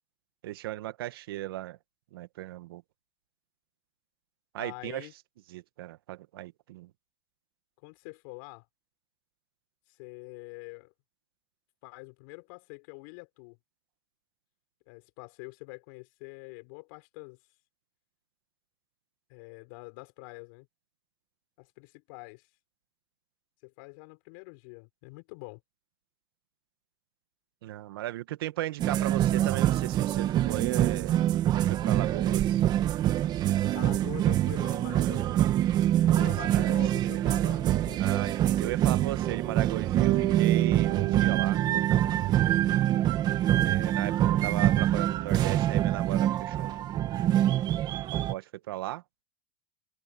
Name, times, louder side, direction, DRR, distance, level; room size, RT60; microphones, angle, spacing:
voice 1, 0.4-1.8 2.1-2.8 4.5-5.1 5.5-6.9 27.6-31.2 31.5-32.6 36.1-36.3 36.5-36.7 37.0-37.6 38.0-41.6 43.5-46.9 48.3-49.0, right 15 dB, 90° right, 1.8 m, -36 dB
voice 2, 4.6-5.1 7.8-8.6 9.9-10.9 11.8-13.6 14.9-17.4 19.3-20.7 21.6-22.5 23.6-25.6 33.7-35.5 36.0-38.3, left 31 dB, 60° left, 6.1 m, -45 dB
sound 1, 28.8-48.3, right 12 dB, 35° right, 1.5 m, -25 dB
Bass guitar, 40.0-44.1, right 23 dB, 55° right, 1.9 m, -32 dB
supercardioid pair, 145°, 12 cm